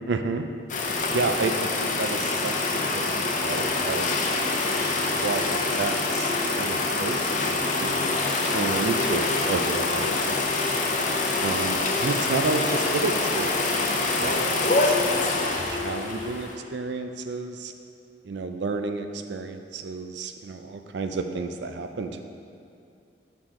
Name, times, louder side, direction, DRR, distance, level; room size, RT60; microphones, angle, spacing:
voice 1, 0.1-0.5 1.1-4.2 5.0-10.5 11.4-17.7 18.2-22.2, right 3 dB, 80° right, 7 dB, 0.4 m, -31 dB
sound 1, 0.7-16.5, left 3 dB, 45° left, 0.6 m, -25 dB
6.4 x 6.0 x 3.7 m, 2.6 s
head